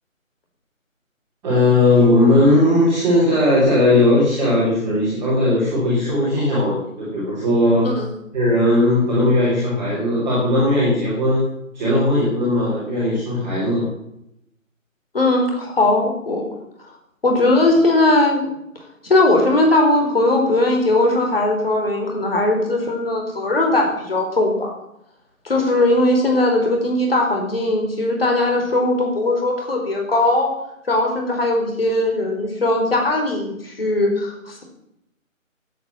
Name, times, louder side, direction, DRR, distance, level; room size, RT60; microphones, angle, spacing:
voice 1, 1.4-7.9 8.3-11.4 11.7-13.8, left 1 dB, 5° right, -12 dB, 3.0 m, -17 dB
voice 2, 15.1-16.4 17.2-18.5 19.1-24.7 25.4-30.5 30.9-34.6, left 2 dB, 45° left, 1 dB, 4.5 m, -19 dB
15.0 x 9.4 x 7.5 m, 0.81 s
figure-of-eight pair, 165°, 41 cm